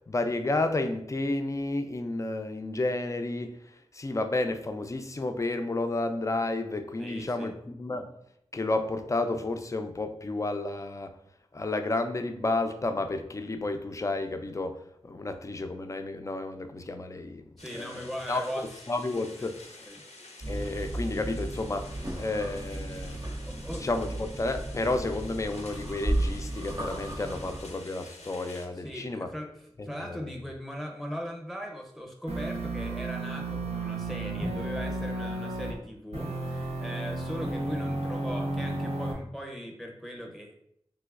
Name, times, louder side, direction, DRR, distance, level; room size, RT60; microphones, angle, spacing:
voice 1, 0.1-8.1 8.5-11.1 11.5-17.5 17.7-18.4 18.9-19.8 20.5-23.2 23.8-29.3 29.8-30.4, left 2 dB, 30° left, 7 dB, 0.3 m, -31 dB
voice 2, 7.0-7.5 17.6-18.6 19.4-19.5 19.9-20.0 23.5-23.8 28.7-29.5 29.8-40.5, equal, ahead, 1 dB, 0.7 m, -39 dB
sound 1, 17.6-28.7, left 2 dB, 90° left, 0.5 m, -49 dB
sound 2, 20.4-27.6, right 1 dB, 40° right, 0.6 m, -34 dB
sound 3, 32.3-35.7 36.1-39.1, right 2 dB, 80° right, 0.8 m, -33 dB
3.3 x 2.9 x 2.4 m, 0.76 s
wide cardioid pair, 50°, 11 cm